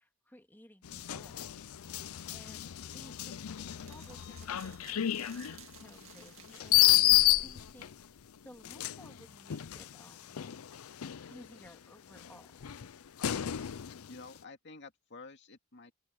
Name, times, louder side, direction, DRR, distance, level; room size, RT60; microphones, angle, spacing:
voice 1, 0.0-1.6 2.0-8.1 8.4-10.4 11.3-12.7, left 1 dB, 10° left, 2.8 m, -57 dB
sound 1, 0.8-8.0 8.6-11.7 12.2-14.2, left 14 dB, 90° left, 0.5 m, -31 dB
sound 2, 2.5-8.8, right 4 dB, 70° right, 2.3 m, -54 dB
voice 2, 14.1-15.9, left 3 dB, 55° left, 2.4 m, -50 dB
open air
head